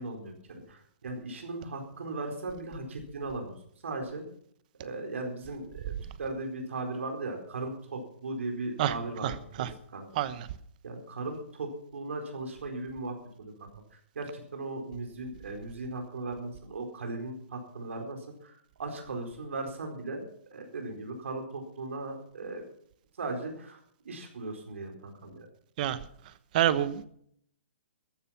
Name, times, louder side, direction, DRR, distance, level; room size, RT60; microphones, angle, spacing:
voice 1, 0.0-3.6 3.8-4.2 4.8-10.1 10.8-20.2 20.5-22.6 23.2-23.8 24.0-25.5, right 2 dB, 80° right, 3 dB, 4.5 m, -38 dB
voice 2, 26.5-27.1, right 11 dB, 40° right, 15 dB, 1.0 m, -26 dB
14.5 x 11.5 x 5.9 m, 0.65 s
hypercardioid pair, 155°, 7 cm